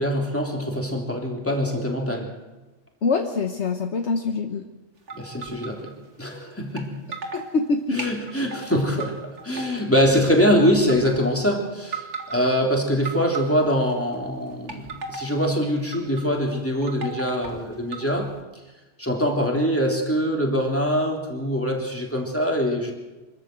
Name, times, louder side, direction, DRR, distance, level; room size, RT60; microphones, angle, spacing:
voice 1, 0.0-2.3 5.1-5.9 6.2-7.2 7.9-18.3 19.0-22.9, equal, 10° left, 0 dB, 3.3 m, -23 dB
voice 2, 3.0-4.7 7.3-8.0, left 4 dB, 65° left, 4 dB, 1.5 m, -24 dB
sound 1, 5.1-5.9 6.8-6.9 7.1-7.5 8.0-9.1 9.4-10.1 10.8-11.3 11.8-12.5 13.0-13.9 14.5-15.4 15.9-16.2 16.5-18.4, right 4 dB, 75° right, 2.4 m, -36 dB
25.0 x 13.5 x 7.9 m, 1.1 s
omnidirectional pair, 1.2 m